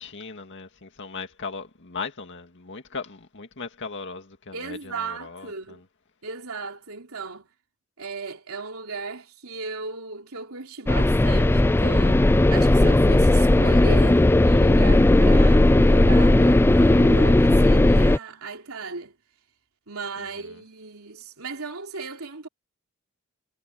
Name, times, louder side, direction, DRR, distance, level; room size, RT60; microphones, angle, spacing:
voice 1, 0.0-5.8 20.2-20.6, left 4 dB, 60° left, 2.1 m, -38 dB
voice 2, 4.5-5.8 6.2-7.5 8.0-19.2 19.9-22.5, right 4 dB, 80° right, 3.5 m, -36 dB
sound 1, 10.9-18.2, left 1 dB, 10° left, 0.3 m, -16 dB
head